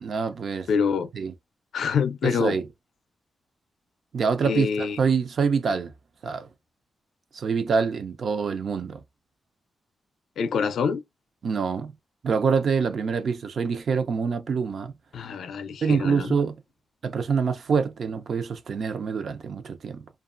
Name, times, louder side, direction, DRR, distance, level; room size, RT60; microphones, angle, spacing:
voice 1, 0.0-0.7 1.1-1.3 2.2-2.6 4.1-5.9 6.2-6.5 7.3-9.0 11.4-11.9 12.2-14.9 15.8-16.5 17.0-20.0, right 5 dB, 50° right, 0.4 m, -25 dB
voice 2, 0.7-1.1 1.7-2.6 4.4-5.0 10.4-11.0 15.1-16.3, left 6 dB, 75° left, 0.4 m, -26 dB
2.9 x 2.3 x 2.4 m
wide cardioid pair, 170°, 0 cm